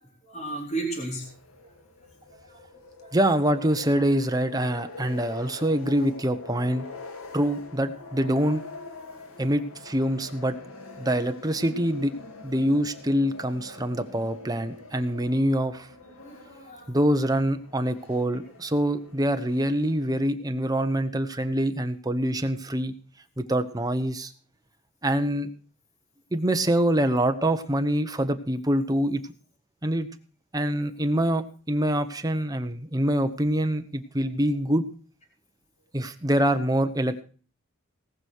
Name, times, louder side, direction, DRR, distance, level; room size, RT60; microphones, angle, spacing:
voice 1, 0.3-1.3 1.6-1.7 2.3-2.6 3.0-3.1 16.2-16.9, right 2 dB, 35° left, 0 dB, 3.8 m, -34 dB
sound 1, 1.2-20.3, left 3 dB, 90° left, 2.1 m, -45 dB
voice 2, 3.1-6.9 7.3-8.6 9.4-10.5 11.0-12.1 12.4-15.9 16.9-22.9 23.4-24.3 25.0-25.5 26.3-29.2 29.8-30.1 30.5-34.8 35.9-37.2, right 1 dB, 20° right, 8 dB, 1.0 m, -25 dB
18.5 x 6.3 x 6.5 m, 0.40 s
head